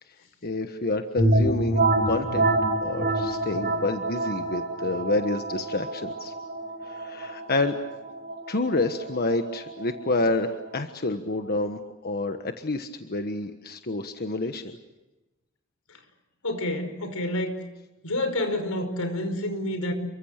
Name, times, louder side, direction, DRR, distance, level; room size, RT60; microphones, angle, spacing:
voice 1, 0.4-2.5 2.8-6.3 6.8-7.8 8.5-14.8, left 2 dB, 45° left, 7 dB, 1.4 m, -28 dB
sound 1, 1.2-10.7, right 2 dB, 45° right, 5.3 m, -27 dB
voice 2, 16.4-17.5 18.0-19.9, left 1 dB, 90° left, 8 dB, 5.3 m, -28 dB
29.5 x 24.0 x 6.7 m, 1.0 s
head